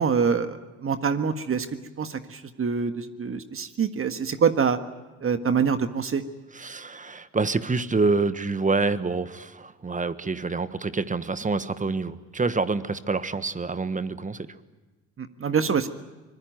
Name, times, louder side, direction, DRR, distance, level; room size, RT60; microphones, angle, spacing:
voice 1, 0.0-1.7 2.0-4.8 5.2-6.2 15.2-15.9, right 6 dB, 35° right, 9 dB, 1.6 m, -25 dB
voice 2, 6.5-14.5, right 3 dB, 20° right, 13 dB, 1.4 m, -27 dB
24.5 x 21.0 x 9.3 m, 1.2 s
hypercardioid pair, 60°, 36 cm